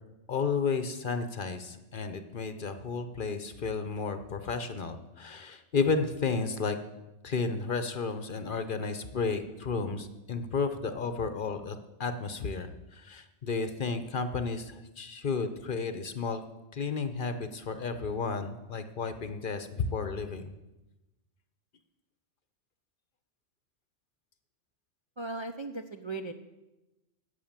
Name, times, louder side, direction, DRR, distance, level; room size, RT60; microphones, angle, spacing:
voice 1, 0.3-6.8 7.2-16.4 16.7-20.5, left 4 dB, 50° left, 9 dB, 0.9 m, -32 dB
voice 2, 25.2-26.3, right 3 dB, 35° right, 5 dB, 0.5 m, -37 dB
11.5 x 8.1 x 7.3 m, 1.0 s
omnidirectional pair, 1.2 m